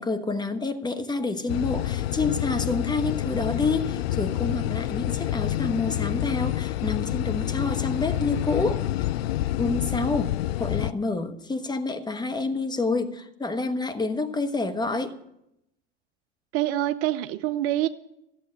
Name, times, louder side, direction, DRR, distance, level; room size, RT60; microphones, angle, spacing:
voice 1, 0.0-8.8 9.6-15.2, left 3 dB, 15° left, 8 dB, 1.2 m, -28 dB
sound 1, 1.5-10.9, left 14 dB, 65° left, 0.5 m, -28 dB
voice 2, 16.5-17.9, right 13 dB, 45° right, 12 dB, 0.6 m, -25 dB
14.0 x 7.7 x 8.7 m, 0.84 s
figure-of-eight pair, 80°, 32 cm